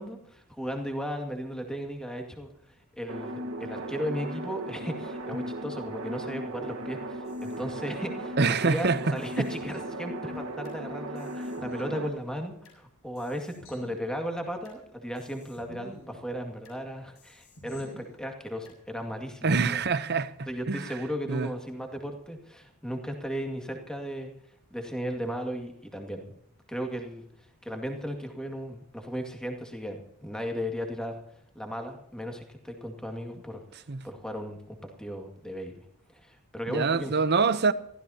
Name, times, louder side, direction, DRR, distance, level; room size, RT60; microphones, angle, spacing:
voice 1, 0.0-19.8 20.5-24.3 24.7-26.3 26.7-31.2 31.5-35.8 36.1-37.1, equal, 5° left, 2.1 m, -36 dB
sound 1, 3.1-12.1, right 1 dB, 70° right, 1.5 m, -37 dB
sound 2, 7.3-8.8 9.2-10.8 11.2-12.8 13.2-14.8 15.2-16.8 17.2-18.8, left 1 dB, 70° left, 7.3 m, -51 dB
voice 2, 8.4-9.5 19.4-20.9 21.3-21.5 33.9-34.0 36.7-37.7, right 4 dB, 50° right, 0.8 m, -25 dB
24.0 x 15.5 x 2.9 m
head